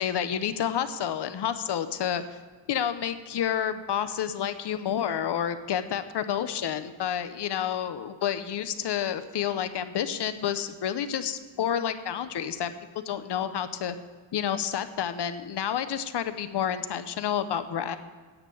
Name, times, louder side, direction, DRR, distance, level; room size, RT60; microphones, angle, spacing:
voice 1, 0.0-2.2 2.7-12.7 13.1-13.9 14.3-18.0, left 9 dB, 60° left, 11 dB, 0.8 m, -29 dB
9.9 x 7.4 x 7.7 m, 1.5 s
wide cardioid pair, 140°, 47 cm